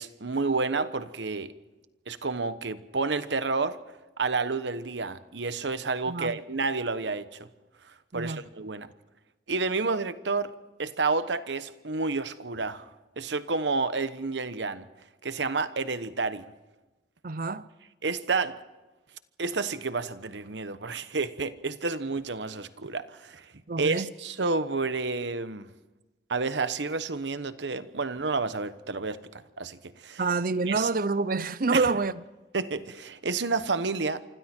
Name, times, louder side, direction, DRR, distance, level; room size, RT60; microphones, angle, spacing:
voice 1, 0.0-1.5 2.1-3.8 4.2-7.5 7.8-8.9 9.5-14.9 15.2-16.5 18.0-18.6 19.4-23.5 23.8-25.7 26.3-30.2 30.7-30.9 31.7-31.9 32.5-34.2, right 4 dB, 75° right, 1.1 m, -30 dB
voice 2, 6.1-6.4 8.1-8.4 17.2-17.7 23.7-24.1 30.2-32.1, right 3 dB, 50° right, 0.7 m, -27 dB
27.5 x 25.5 x 4.5 m
head